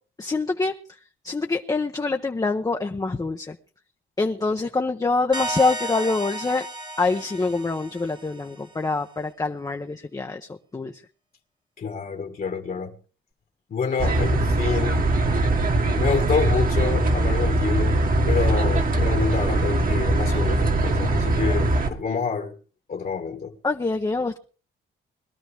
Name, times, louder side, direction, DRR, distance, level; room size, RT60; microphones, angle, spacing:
voice 1, 0.2-0.7 1.2-3.6 4.2-6.7 7.0-10.9 23.6-24.4, left 3 dB, 20° left, 0.9 m, -25 dB
sound 1, 5.3-8.7, right 1 dB, 25° right, 1.6 m, -33 dB
voice 2, 11.8-13.0 13.7-15.0 15.9-18.0 18.3-22.6 22.9-23.6, left 5 dB, 45° left, 1.8 m, -28 dB
sound 2, 14.0-21.9, right 2 dB, 45° right, 1.8 m, -21 dB
22.0 x 12.5 x 3.4 m
cardioid pair, 90°, 20 cm